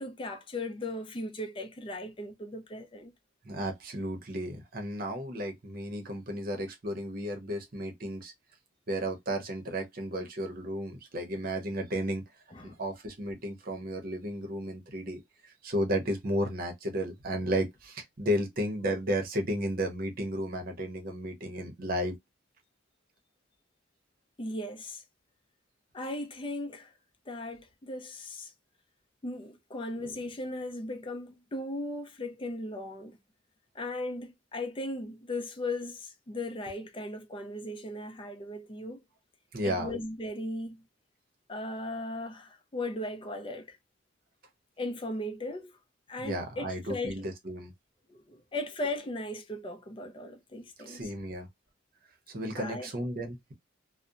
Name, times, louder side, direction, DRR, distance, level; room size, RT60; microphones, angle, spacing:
voice 1, 0.0-3.1 12.5-12.8 24.4-25.0 25.9-26.9 27.3-28.5 29.2-33.2 33.7-39.0 39.6-40.8 41.5-43.8 44.8-45.7 46.1-47.2 48.1-51.0 52.6-52.9, left 1 dB, 25° left, 0.5 m, -37 dB
voice 2, 3.4-8.3 8.9-12.2 12.6-22.2 39.5-39.9 46.2-47.7 50.9-51.5 52.3-53.5, equal, 50° right, 0.8 m, -33 dB
2.7 x 2.1 x 2.4 m
head